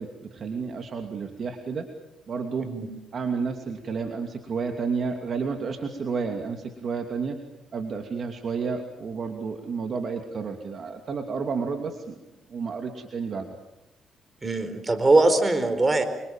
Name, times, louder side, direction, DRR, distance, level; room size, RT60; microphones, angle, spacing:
voice 1, 0.0-1.8 2.3-2.7 3.1-7.4 7.7-12.2 12.5-13.5, right 5 dB, 50° right, 4 dB, 2.8 m, -31 dB
voice 2, 14.4-16.0, right 2 dB, 25° right, 9 dB, 4.5 m, -21 dB
27.5 x 25.5 x 7.5 m, 0.96 s
cardioid pair, 90°, 0 cm